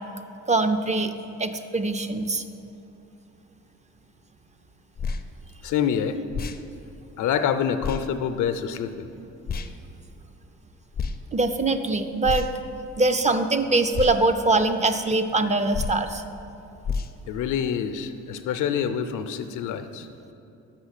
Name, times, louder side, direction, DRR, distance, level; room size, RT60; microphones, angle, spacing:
voice 1, 0.5-1.1 1.4-2.4 11.3-12.5 13.0-16.2, right 2 dB, 25° right, 7 dB, 0.4 m, -23 dB
sound 1, 5.0-5.2 6.3-6.6 7.8-8.0 9.5-9.7 10.9-11.2 12.2-12.7 13.9-14.2 15.7-16.0 16.8-17.1, left 5 dB, 35° left, 0.4 m, -29 dB
voice 2, 5.6-6.2 7.2-9.1 17.3-20.1, left 8 dB, 80° left, 9 dB, 0.6 m, -26 dB
6.2 x 5.7 x 6.5 m, 2.9 s
cardioid pair, 90°, 30 cm